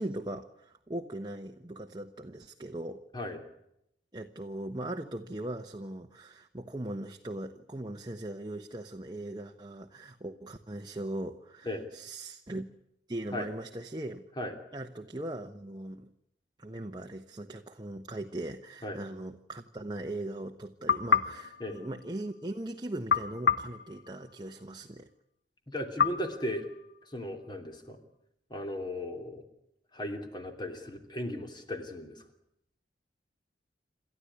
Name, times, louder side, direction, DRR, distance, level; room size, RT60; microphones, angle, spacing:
voice 1, 0.0-3.0 4.1-12.7 13.1-14.3 14.7-16.1 16.6-25.1, right 1 dB, 25° right, 4 dB, 1.1 m, -39 dB
sound 1, 20.9-22.5 23.1-24.7 26.0-27.3, left 6 dB, 75° left, 1.2 m, -31 dB
voice 2, 25.7-26.7 27.1-28.0 28.5-29.4 29.9-32.2, left 1 dB, 25° left, 6 dB, 3.1 m, -36 dB
28.5 x 13.5 x 9.8 m, 0.80 s
head